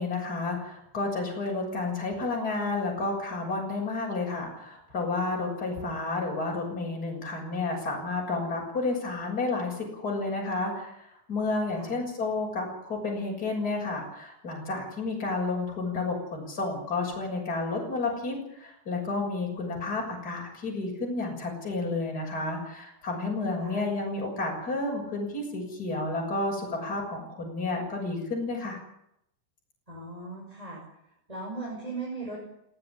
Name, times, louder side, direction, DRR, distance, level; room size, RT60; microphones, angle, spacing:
voice 1, 0.0-11.0 11.3-28.8, left 3 dB, 20° left, -1 dB, 6.9 m, -31 dB
voice 2, 5.6-6.0 11.8-12.0 23.6-23.8 29.9-30.8 31.3-32.4, right 3 dB, 5° right, -2 dB, 5.6 m, -38 dB
19.5 x 17.0 x 10.0 m, 0.78 s
omnidirectional pair, 5.8 m